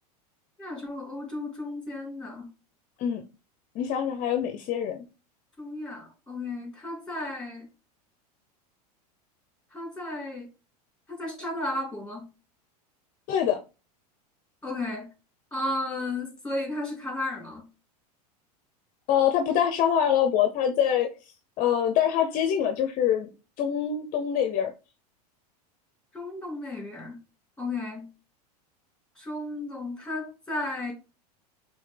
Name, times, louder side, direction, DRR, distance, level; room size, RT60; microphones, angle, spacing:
voice 1, 0.6-2.5 5.6-7.7 9.7-10.5 11.1-12.3 14.6-15.1 15.5-17.7 26.1-27.2 27.6-28.1 29.2-30.9, left 2 dB, 5° left, 2.4 m, -34 dB
voice 2, 3.7-5.0 13.3-13.6 19.1-21.1 21.6-23.3 23.6-24.7, left 9 dB, 40° left, 0.7 m, -24 dB
5.6 x 2.8 x 3.3 m
supercardioid pair, 115°, 20 cm